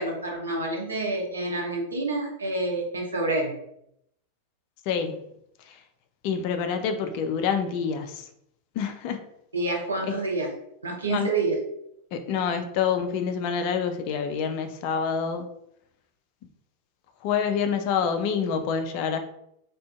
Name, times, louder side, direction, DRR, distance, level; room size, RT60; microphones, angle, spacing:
voice 1, 0.0-3.5 9.5-10.5 10.8-11.6, right 2 dB, 75° right, 0 dB, 0.6 m, -28 dB
voice 2, 4.9-5.2 5.7-5.8 6.2-8.3 8.8-9.2 11.1-11.3 12.1-15.5 17.2-19.2, left 6 dB, 45° left, 7 dB, 0.3 m, -27 dB
2.5 x 2.2 x 2.3 m, 0.76 s
figure-of-eight pair, 90°, 0 cm